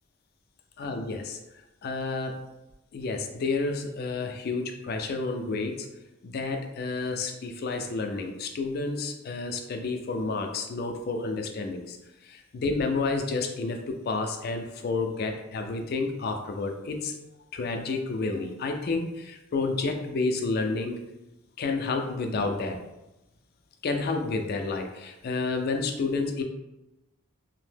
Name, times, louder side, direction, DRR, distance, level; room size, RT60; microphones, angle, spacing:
voice 1, 0.8-1.4 1.8-2.5 2.9-5.9 6.2-12.0 12.2-17.2 17.5-21.0 21.6-22.8 23.8-26.4, left 3 dB, 50° left, 5 dB, 0.3 m, -30 dB
2.7 x 2.0 x 3.3 m, 0.96 s
head